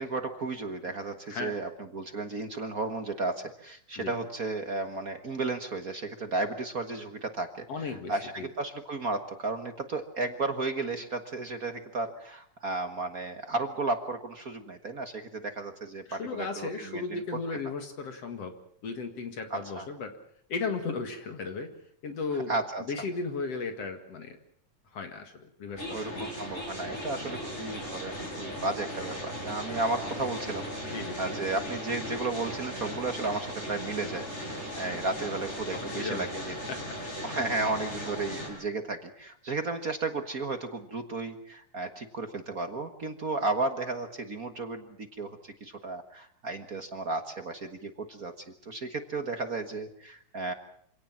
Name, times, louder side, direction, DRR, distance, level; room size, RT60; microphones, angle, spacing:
voice 1, 0.0-17.2 19.5-19.9 22.5-22.8 25.9-36.5 37.2-50.5, right 3 dB, 45° right, 7 dB, 1.1 m, -34 dB
voice 2, 7.7-8.5 16.1-18.6 18.8-20.1 20.5-21.7 22.0-22.5 22.9-24.4 24.9-26.3 30.9-31.2 34.9-35.0 35.7-36.3 36.7-36.8, left 4 dB, 55° left, 7 dB, 2.8 m, -35 dB
sound 1, 25.8-38.5, equal, 20° left, 7.7 m, -37 dB
26.5 x 17.5 x 7.3 m, 0.64 s
omnidirectional pair, 3.6 m